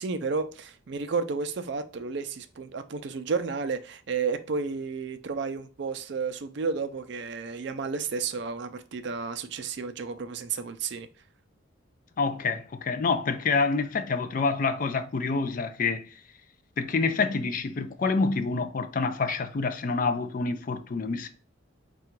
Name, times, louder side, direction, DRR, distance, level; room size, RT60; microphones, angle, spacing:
voice 1, 0.0-11.1, right 5 dB, 55° right, 0.4 m, -32 dB
voice 2, 12.2-16.1 16.8-21.3, left 4 dB, 40° left, 0.4 m, -27 dB
3.7 x 2.3 x 4.4 m
head